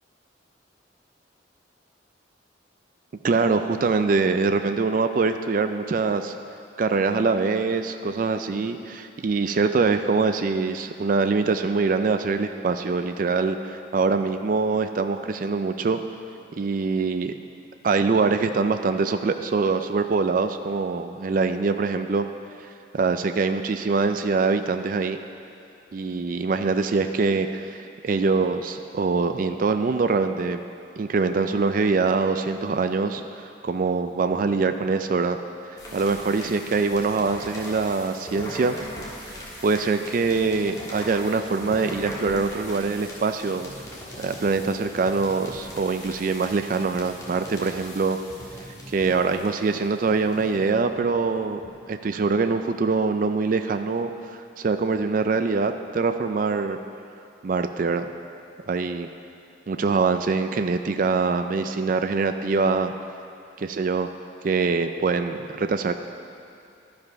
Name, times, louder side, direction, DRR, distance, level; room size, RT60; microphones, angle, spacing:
voice 1, 3.2-6.3 6.8-16.0 16.6-17.3 17.8-22.3 22.9-25.2 25.9-27.8 28.0-30.6 31.0-35.4 35.7-38.8 39.3-43.9 44.2-48.2 48.9-51.6 51.9-56.8 57.4-58.1 58.7-59.1 59.7-63.0 63.6-64.1 64.4-65.9, right 4 dB, 45° right, 8 dB, 0.4 m, -24 dB
sound 1, 35.8-51.7, equal, 20° left, 1.5 m, -40 dB
12.0 x 5.2 x 5.2 m, 2.6 s
head